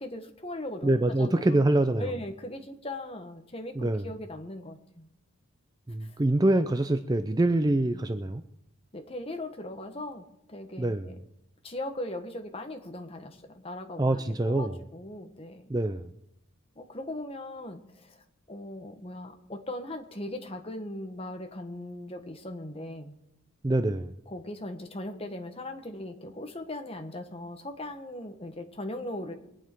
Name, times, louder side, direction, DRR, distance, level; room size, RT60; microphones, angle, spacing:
voice 1, 0.0-1.6 2.0-5.1 6.0-6.2 7.9-8.1 8.9-11.2 11.6-15.7 16.7-23.1 24.3-29.3, left 1 dB, 25° left, 5 dB, 1.3 m, -39 dB
voice 2, 0.8-2.1 3.8-4.1 5.9-8.4 10.8-11.1 14.0-14.8 15.7-16.1 23.6-24.1, right 1 dB, 15° right, 9 dB, 0.4 m, -25 dB
23.5 x 9.0 x 4.6 m, 0.80 s
head